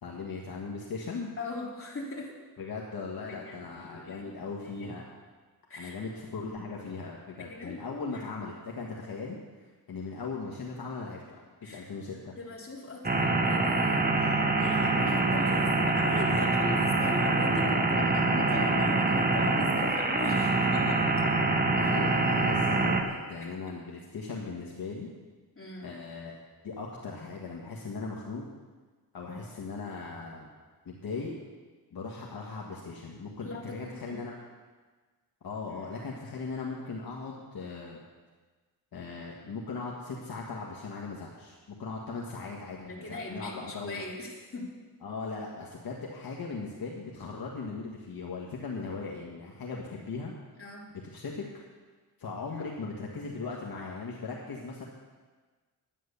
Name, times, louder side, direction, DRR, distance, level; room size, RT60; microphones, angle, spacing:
voice 1, 0.0-1.3 2.6-5.0 5.8-12.3 13.1-13.3 21.7-25.1 25.8-26.3 26.6-28.5 29.1-30.5 30.8-31.4 31.9-34.3 35.4-38.0 38.9-44.0 45.0-50.3 51.1-51.4 52.2-54.8, left 4 dB, 60° left, -2 dB, 1.7 m, -38 dB
voice 2, 1.4-2.3 3.3-4.4 4.7-4.9 5.7-6.0 7.4-7.8 8.1-8.2 11.6-11.9 12.2-21.4 23.4-23.8 25.5-25.9 33.4-33.8 34.0-34.2 42.9-44.7 50.6-50.9, left 2 dB, 35° left, -3 dB, 3.3 m, -39 dB
sound 1, 13.0-23.0, right 3 dB, 25° right, 1.3 m, -25 dB
11.0 x 9.5 x 6.9 m, 1.4 s
cardioid pair, 90°, 40 cm